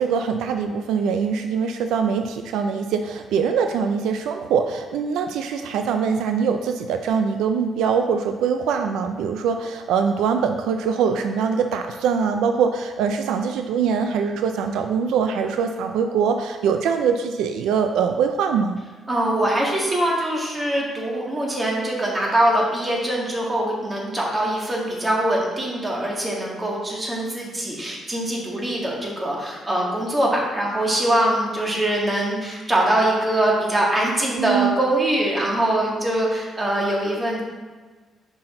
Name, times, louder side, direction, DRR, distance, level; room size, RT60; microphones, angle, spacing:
voice 1, 0.0-18.8 34.4-34.8, right 6 dB, 85° right, 6 dB, 0.3 m, -23 dB
voice 2, 19.1-37.4, right 1 dB, 25° right, -3 dB, 1.9 m, -23 dB
6.0 x 5.6 x 3.8 m, 1.3 s
cardioid pair, 90°, 0 cm